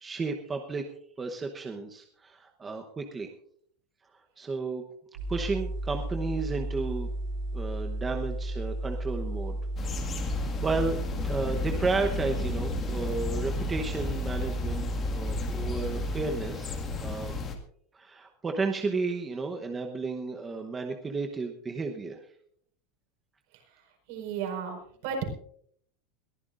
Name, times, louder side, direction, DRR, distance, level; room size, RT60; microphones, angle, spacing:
voice 1, 0.0-0.8 1.2-3.3 4.4-4.8 5.3-7.1 7.5-9.6 9.9-17.4 17.9-22.2, right 4 dB, 15° right, 3 dB, 1.0 m, -33 dB
sound 1, 5.2-16.2, right 1 dB, 80° right, 7.0 m, -33 dB
sound 2, 9.8-17.6, left 4 dB, 25° left, 1.9 m, -34 dB
voice 2, 24.1-25.3, right 7 dB, 60° right, 2 dB, 5.0 m, -34 dB
22.0 x 14.0 x 2.6 m, 0.63 s
supercardioid pair, 165°, 0 cm